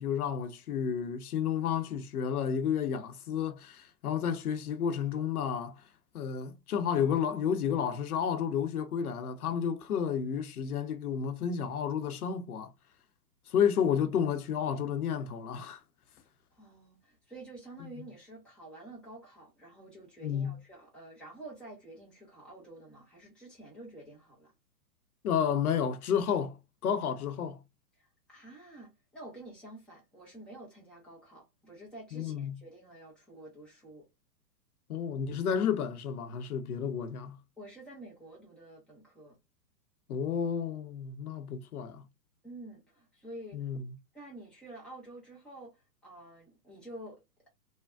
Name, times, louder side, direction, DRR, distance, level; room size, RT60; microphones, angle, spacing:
voice 1, 0.0-5.8 6.1-12.7 13.5-15.8 20.2-20.5 25.2-27.6 32.1-32.6 34.9-37.4 40.1-42.0 43.5-43.8, left 8 dB, 60° left, 0.8 m, -31 dB
voice 2, 16.5-24.5 28.0-34.1 37.6-39.4 42.4-43.7 44.1-47.2, right 1 dB, ahead, 0.5 m, -49 dB
3.3 x 2.2 x 2.4 m
hypercardioid pair, 120°, 49 cm